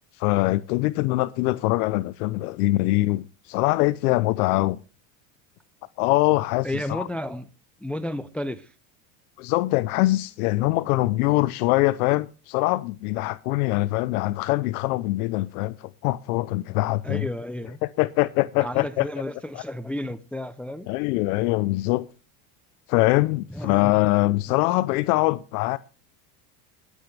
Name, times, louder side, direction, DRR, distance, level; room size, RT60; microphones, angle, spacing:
voice 1, 0.2-4.8 6.0-7.1 9.4-17.3 17.8-19.1 19.5-19.6 20.9-22.1 22.9-25.8, left 19 dB, 75° left, 0.7 m, -23 dB
voice 2, 6.6-7.5 7.8-8.7 17.0-17.8 18.6-20.9 23.5-24.0, left 1 dB, 5° left, 0.5 m, -32 dB
22.0 x 8.3 x 3.3 m
supercardioid pair, 120°, 44 cm